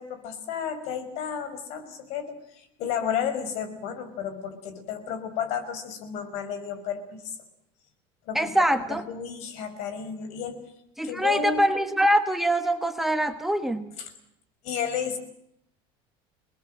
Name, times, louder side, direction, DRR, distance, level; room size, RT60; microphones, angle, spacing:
voice 1, 0.0-7.4 8.3-8.5 8.9-10.6 11.0-11.7 14.0-14.1 14.6-15.2, left 7 dB, 60° left, 10 dB, 5.7 m, -32 dB
voice 2, 8.3-9.0 11.0-13.9, equal, ahead, 7 dB, 1.4 m, -24 dB
29.0 x 20.0 x 7.7 m, 0.77 s
cardioid pair, 145°, 13 cm